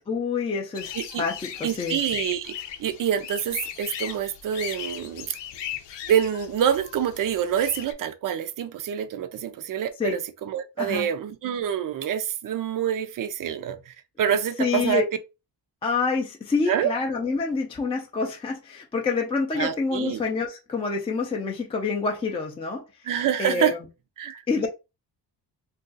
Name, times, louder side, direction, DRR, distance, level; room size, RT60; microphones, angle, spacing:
voice 1, 0.1-2.0 10.0-10.2 10.8-11.1 14.6-15.0 15.8-22.8 23.4-23.8 24.5-24.7, left 4 dB, 15° left, 0.3 m, -27 dB
sound 1, 0.7-7.9, left 10 dB, 85° left, 0.6 m, -38 dB
voice 2, 1.6-2.5 2.8-5.4 6.1-15.0 16.7-16.9 19.5-20.2 23.0-23.7 24.2-24.4, right 9 dB, 50° right, 0.4 m, -26 dB
2.6 x 2.3 x 3.7 m
wide cardioid pair, 165°, 42 cm